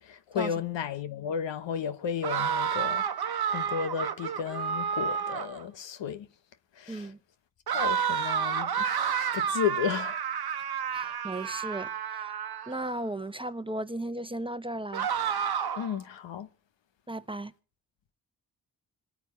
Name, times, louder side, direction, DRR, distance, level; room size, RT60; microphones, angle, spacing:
voice 1, 0.0-6.3 6.8-7.1 7.7-10.2 15.8-16.5, left 8 dB, 75° left, 1.2 m, -33 dB
sound 1, 2.2-5.6 7.7-12.9 14.9-16.0, right 7 dB, 60° right, 1.1 m, -30 dB
voice 2, 6.9-7.2 10.9-12.3 12.7-15.1 17.1-17.5, right 1 dB, 10° right, 0.9 m, -35 dB
26.5 x 9.2 x 4.4 m
supercardioid pair, 40°, 44 cm